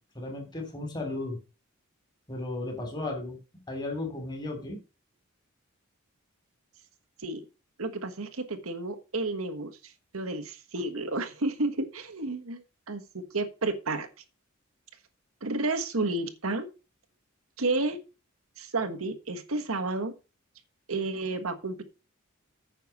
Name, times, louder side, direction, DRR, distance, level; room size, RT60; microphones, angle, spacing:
voice 1, 0.1-1.4 2.3-3.4 3.7-4.8, left 2 dB, 20° left, 2 dB, 3.2 m, -34 dB
voice 2, 7.8-14.1 15.4-16.7 17.6-18.0 18.6-20.1 20.9-21.8, right 2 dB, 80° right, 8 dB, 1.4 m, -31 dB
9.2 x 5.8 x 6.0 m, 0.32 s
head